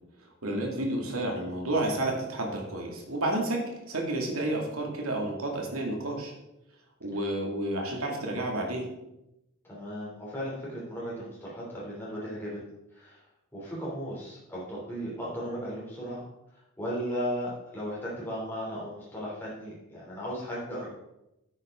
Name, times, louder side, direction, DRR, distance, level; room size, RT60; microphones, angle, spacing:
voice 1, 0.2-6.3 7.0-8.9, right 1 dB, 90° right, 0 dB, 2.4 m, -31 dB
voice 2, 9.6-12.6 12.9-13.2 13.5-16.3 16.5-20.9, equal, 10° left, -7 dB, 3.2 m, -36 dB
10.0 x 8.3 x 3.8 m, 0.88 s
head